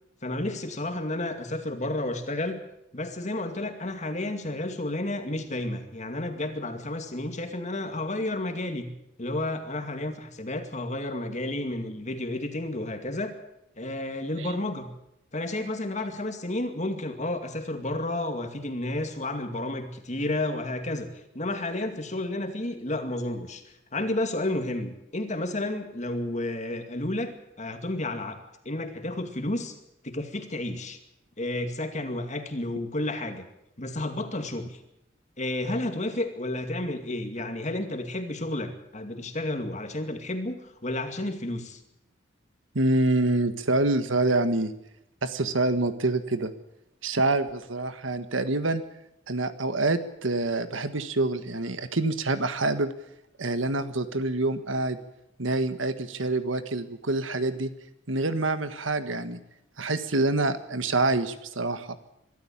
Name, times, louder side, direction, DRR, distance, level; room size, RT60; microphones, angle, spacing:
voice 1, 0.2-2.6 2.9-8.9 9.2-13.3 13.8-14.9 15.3-21.1 21.3-23.6 23.9-28.4 28.6-29.7 30.0-31.0 31.4-33.4 33.8-34.8 35.4-41.8, left 1 dB, 35° left, 6 dB, 2.3 m, -31 dB
voice 2, 42.7-44.7 45.2-46.5 47.0-48.8 49.3-52.9 53.4-55.0 55.4-57.7 58.1-59.4 59.8-62.0, right 2 dB, 80° right, 11 dB, 1.5 m, -26 dB
23.5 x 13.0 x 8.8 m, 0.83 s
head